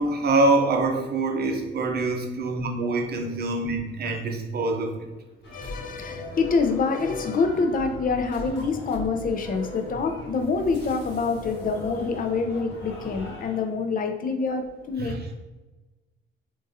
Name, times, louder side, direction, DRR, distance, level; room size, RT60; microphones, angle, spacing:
voice 1, 0.0-5.1 15.0-15.3, right 2 dB, 55° right, 3 dB, 0.7 m, -25 dB
sound 1, 5.4-13.7, left 1 dB, 70° left, 1.2 m, -39 dB
voice 2, 5.5-15.2, left 4 dB, 45° left, 5 dB, 0.5 m, -26 dB
3.7 x 2.6 x 2.7 m, 1.2 s
cardioid pair, 90°, 20 cm